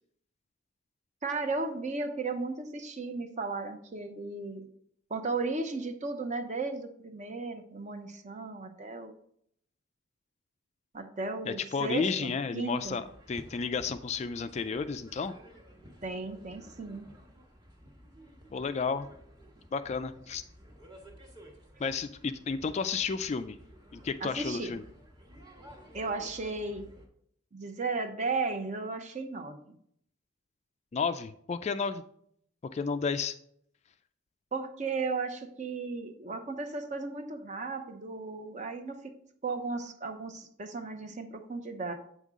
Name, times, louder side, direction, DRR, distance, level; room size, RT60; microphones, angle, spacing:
voice 1, 1.2-4.7 5.1-9.1 10.9-13.0 16.0-17.1 24.2-24.7 25.9-26.9 27.5-29.8 34.5-39.0 39.4-41.9, right 3 dB, 35° right, 7 dB, 0.8 m, -35 dB
voice 2, 11.5-15.3 18.5-19.1 19.7-20.4 21.8-23.6 23.9-24.8 30.9-32.0 32.7-33.4, left 5 dB, 35° left, 11 dB, 0.3 m, -32 dB
sound 1, 12.8-27.1, equal, 20° right, 1.3 m, -54 dB
8.2 x 5.4 x 3.6 m, 0.67 s
head